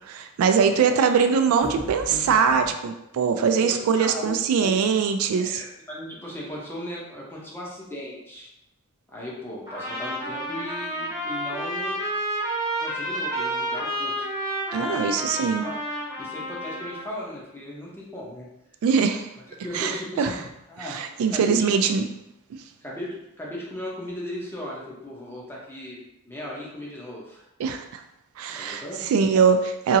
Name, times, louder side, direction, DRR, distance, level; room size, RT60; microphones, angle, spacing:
voice 1, 0.1-5.6 14.7-15.6 18.8-19.3 19.7-20.3 20.8-22.1 27.6-28.0 28.4-30.0, right 6 dB, 85° right, 11 dB, 0.3 m, -22 dB
voice 2, 0.8-1.3 3.6-4.8 5.4-8.5 9.1-12.0 12.8-14.3 14.8-15.7 16.2-18.5 19.4-21.0 21.3-21.9 22.8-27.4 28.5-29.1, left 1 dB, 10° left, -5 dB, 0.7 m, -37 dB
sound 1, 1.6-2.7, equal, 70° left, 1.0 m, -38 dB
Trumpet, 9.7-17.0, right 1 dB, 15° right, 0.9 m, -30 dB
2.9 x 2.6 x 2.6 m, 0.85 s
head